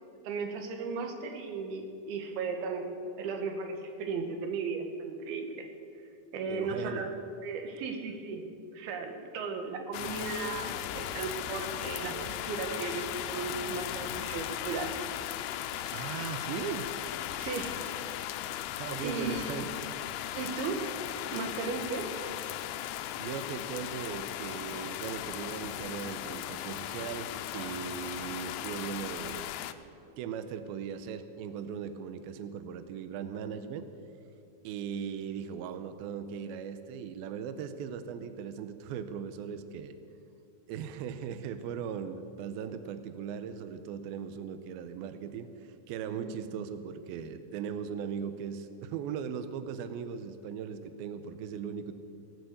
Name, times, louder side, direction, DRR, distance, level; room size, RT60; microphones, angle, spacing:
voice 1, 0.2-5.7 6.3-8.4 8.7-15.0 17.4-17.8 19.0-19.5 20.3-20.9 21.3-22.1 46.2-46.3, right 4 dB, 70° right, 5 dB, 2.8 m, -36 dB
voice 2, 6.5-7.1 15.9-16.9 18.8-19.9 23.2-29.5 30.2-33.9 34.6-40.0 40.7-51.9, right 7 dB, 90° right, 10 dB, 2.1 m, -38 dB
sound 1, 9.9-29.7, left 12 dB, 85° left, 2.4 m, -37 dB
17.5 x 7.1 x 7.9 m, 2.6 s
omnidirectional pair, 5.1 m